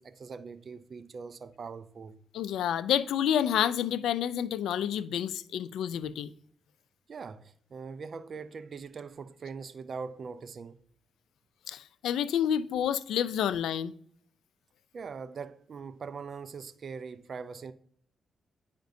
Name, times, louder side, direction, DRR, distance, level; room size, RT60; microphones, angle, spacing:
voice 1, 0.0-2.2 7.1-10.8 14.9-17.7, right 5 dB, 55° right, 0.4 m, -42 dB
voice 2, 2.3-6.3 11.7-13.9, left 10 dB, 90° left, 0.3 m, -29 dB
9.2 x 5.1 x 2.6 m
cardioid pair, 70°, 0 cm